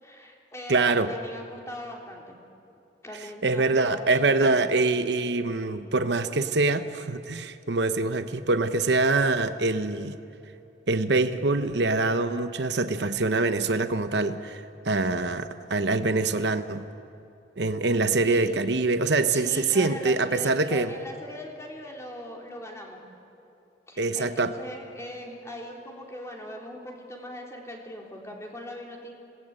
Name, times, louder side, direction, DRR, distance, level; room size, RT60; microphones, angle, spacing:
voice 1, 0.0-2.4 3.0-4.5 18.2-18.5 19.3-23.0 23.9-29.1, equal, 15° left, 0 dB, 3.4 m, -40 dB
voice 2, 0.7-1.1 3.4-10.2 10.9-16.8 17.6-20.9 24.0-24.5, right 3 dB, 65° right, 10 dB, 0.9 m, -24 dB
26.0 x 19.5 x 8.9 m, 2.7 s
head